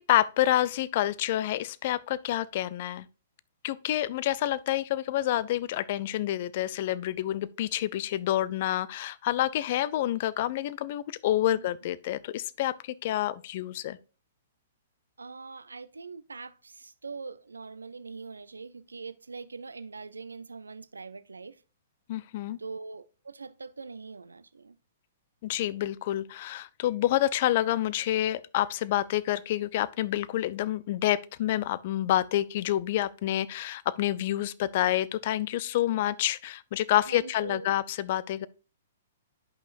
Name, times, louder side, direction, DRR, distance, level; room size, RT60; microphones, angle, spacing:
voice 1, 0.0-3.1 3.6-14.0 22.1-22.6 25.4-38.5, left 13 dB, 50° left, 0.5 m, -28 dB
voice 2, 11.4-11.7 15.2-21.6 22.6-24.8 37.1-37.7, right 4 dB, 85° right, 0.5 m, -42 dB
11.0 x 5.5 x 2.5 m
hypercardioid pair, 120°, 0 cm